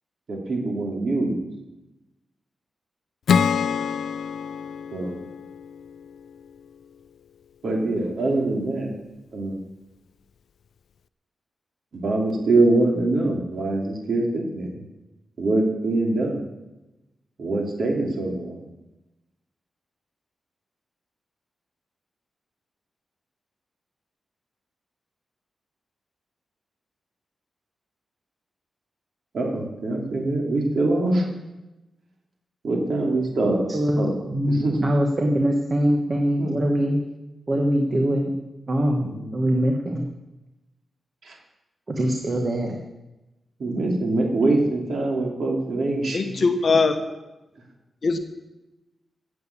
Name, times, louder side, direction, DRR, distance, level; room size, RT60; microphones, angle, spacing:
voice 1, 0.3-1.4 4.9-5.2 7.6-8.9 9.3-9.6 11.9-14.9 15.4-16.4 17.4-18.6 29.3-31.3 32.6-33.7 34.0-34.9 36.4-36.6 38.9-39.4 41.2-41.4 43.6-46.8, right 2 dB, 55° right, 0 dB, 3.3 m, -24 dB
Acoustic guitar / Strum, 3.3-6.7, left 7 dB, 75° left, 0.4 m, -26 dB
voice 2, 33.7-37.0 37.5-38.4 38.7-39.1 39.3-40.1 41.9-42.8, equal, 30° right, 2 dB, 1.4 m, -23 dB
voice 3, 46.1-47.0 48.0-48.2, left 4 dB, 45° left, 7 dB, 1.3 m, -20 dB
15.5 x 8.0 x 8.6 m, 1.0 s
wide cardioid pair, 175°, 0 cm